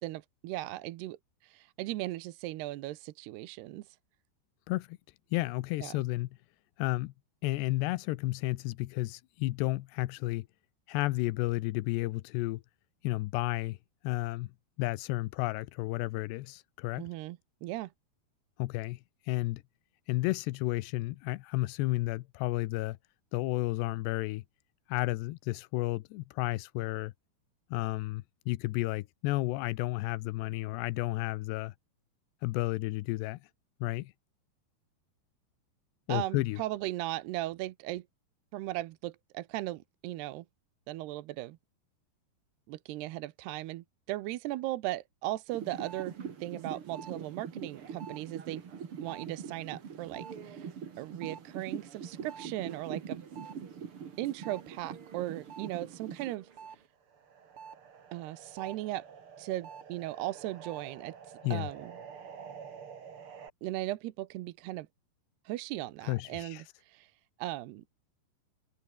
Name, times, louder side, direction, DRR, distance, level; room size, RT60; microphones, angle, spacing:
voice 1, 0.0-4.0 5.8-6.0 17.0-17.9 36.1-38.0 38.5-40.5 40.9-41.6 42.7-48.6 49.0-50.7 51.0-53.2 54.2-56.5 58.1-59.1 59.4-61.1 61.5-61.9 63.6-64.9 65.5-67.1 67.4-67.8, right 16 dB, 80° right, 2.9 m, -37 dB
voice 2, 4.7-5.0 5.3-6.3 6.8-7.1 7.4-10.5 10.9-12.6 13.0-13.8 14.0-14.5 14.8-17.1 18.6-19.6 20.1-23.0 23.3-24.4 24.9-27.1 27.7-31.7 32.4-33.4 33.8-34.1 36.1-36.6 61.4-61.7 66.1-66.6, left 19 dB, 90° left, 2.9 m, -32 dB
sound 1, 45.5-56.8 57.1-63.5, right 7 dB, 40° right, 2.4 m, -44 dB
omnidirectional pair, 4.8 m